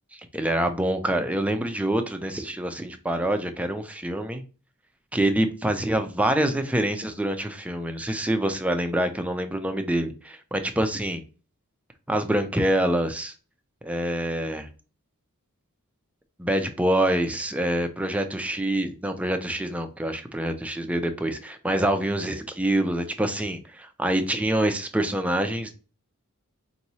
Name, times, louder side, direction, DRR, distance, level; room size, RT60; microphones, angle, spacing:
voice 1, 0.3-4.4 5.1-11.2 12.1-13.3 13.8-14.7 16.4-25.7, right 1 dB, 5° right, 7 dB, 0.4 m, -26 dB
4.5 x 3.0 x 2.7 m, 0.36 s
head